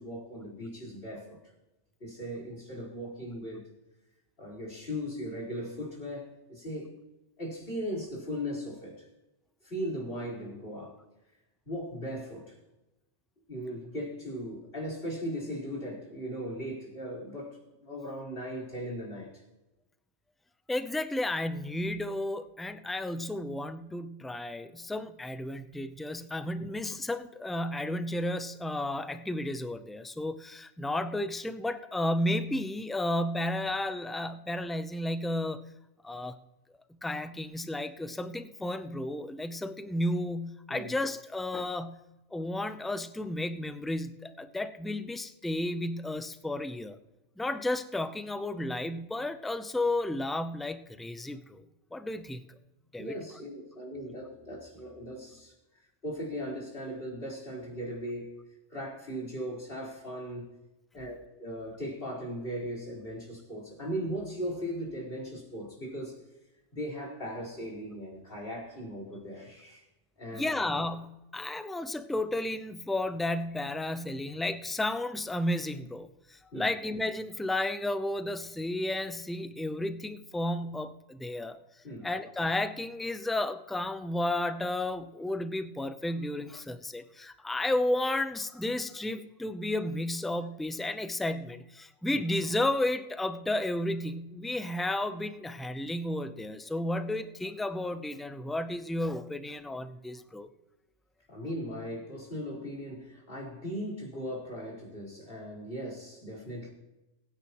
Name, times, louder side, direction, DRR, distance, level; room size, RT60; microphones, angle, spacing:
voice 1, 0.0-1.4 2.0-3.7 4.4-6.9 7.4-9.1 9.6-11.0 11.6-12.6 13.5-19.4 26.6-26.7 40.7-40.9 53.0-55.5 56.0-58.4 58.7-60.5 60.9-66.2 66.7-69.9 70.2-70.6 76.5-76.7 81.8-82.1 92.1-92.2 101.3-106.7, equal, 50° left, -4 dB, 4.7 m, -38 dB
voice 2, 20.7-35.6 36.0-36.4 37.0-42.0 42.3-47.0 47.4-51.6 51.9-52.4 52.9-53.1 70.3-81.6 82.0-100.5, left 1 dB, ahead, 10 dB, 0.3 m, -32 dB
22.5 x 9.7 x 3.1 m, 0.98 s
omnidirectional pair, 1.2 m